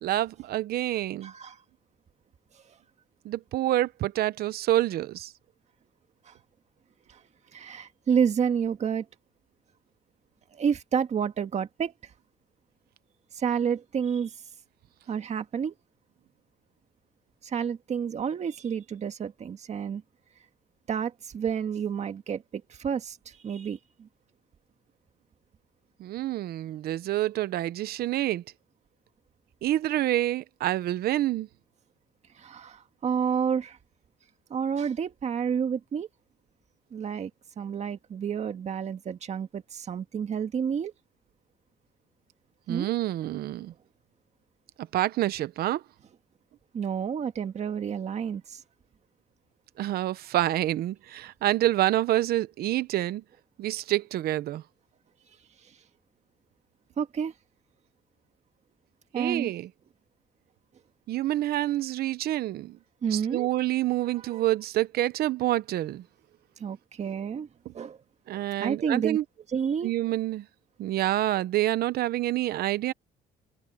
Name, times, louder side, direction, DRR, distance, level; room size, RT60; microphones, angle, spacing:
voice 1, 0.0-1.3 3.2-5.3 26.0-28.4 29.6-31.5 42.7-43.7 44.8-45.8 49.8-53.2 53.6-54.6 59.1-59.7 61.1-62.8 63.1-66.0 68.3-69.2 69.8-70.5 70.8-72.9, right 14 dB, 65° right, 0.9 m, -27 dB
voice 2, 0.9-1.6 6.3-6.4 7.1-7.2 7.5-9.1 10.5-11.9 13.3-14.4 15.1-15.7 17.4-20.0 20.9-24.1 32.4-33.8 34.5-36.1 36.9-37.3 37.6-40.9 42.7-42.9 46.7-48.6 57.0-57.3 59.1-59.5 63.0-63.5 64.0-64.4 66.6-67.5 67.7-68.0 68.3-69.2 69.5-69.9, right 7 dB, 40° right, 1.8 m, -30 dB
cardioid pair, 110°, 17 cm